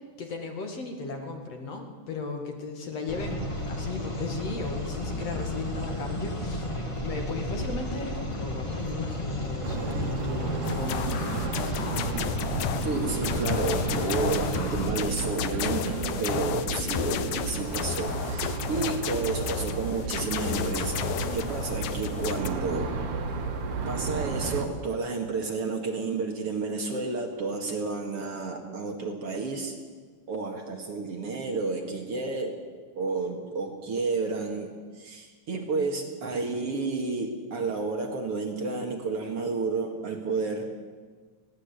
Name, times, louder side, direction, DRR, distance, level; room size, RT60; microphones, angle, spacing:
voice 1, 0.2-6.6 7.0-11.3 11.6-11.9, left 4 dB, 55° left, 3 dB, 3.0 m, -36 dB
sound 1, 3.1-15.0, left 1 dB, 15° left, 1.1 m, -33 dB
sound 2, 9.6-24.6, right 4 dB, 85° right, 3.2 m, -33 dB
sound 3, 10.6-22.5, left 11 dB, 90° left, 2.4 m, -33 dB
voice 2, 12.8-22.9 23.9-29.7 30.3-32.6 33.0-40.7, right 4 dB, 50° right, 2 dB, 2.9 m, -31 dB
20.5 x 17.0 x 8.3 m, 1.5 s
omnidirectional pair, 3.5 m